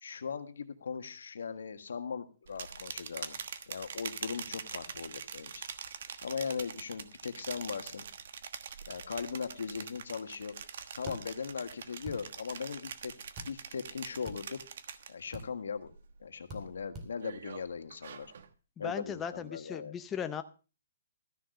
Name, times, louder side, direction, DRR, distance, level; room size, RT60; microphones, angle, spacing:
voice 1, 0.0-3.4 3.7-5.6 6.2-8.0 8.9-10.5 11.0-13.1 13.5-14.6 15.1-15.9 16.2-18.3 18.8-19.9, left 6 dB, 85° left, 9 dB, 1.5 m, -39 dB
sound 1, 2.5-15.4 15.8-16.2 16.6-18.5, right 7 dB, 60° right, 1.2 m, -44 dB
sound 2, 11.1-11.2 12.0-12.2 13.4-13.5 14.2-14.4 15.3-15.5 16.5-16.6 16.9-17.1, right 1 dB, 20° right, 2.3 m, -43 dB
voice 2, 18.8-20.4, left 8 dB, 15° left, 9 dB, 0.6 m, -37 dB
13.5 x 6.2 x 6.6 m, 0.35 s
hypercardioid pair, 160°, 0 cm